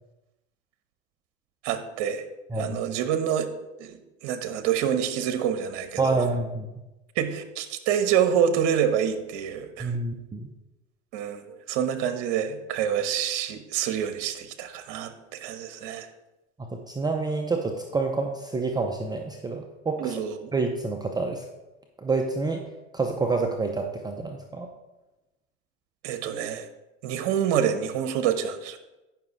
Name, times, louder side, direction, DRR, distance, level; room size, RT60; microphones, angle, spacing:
voice 1, 1.6-2.2 2.6-3.5 3.8-6.2 7.2-9.9 11.1-16.1 20.0-20.5 26.0-26.7 27.0-28.8, right 8 dB, 60° right, 9 dB, 1.1 m, -27 dB
voice 2, 6.0-6.7 9.8-10.5 16.6-20.1 20.5-21.4 22.0-22.6 22.9-24.7, right 3 dB, 10° right, 2 dB, 0.6 m, -28 dB
9.4 x 5.9 x 4.0 m, 1.0 s
hypercardioid pair, 105°, 34 cm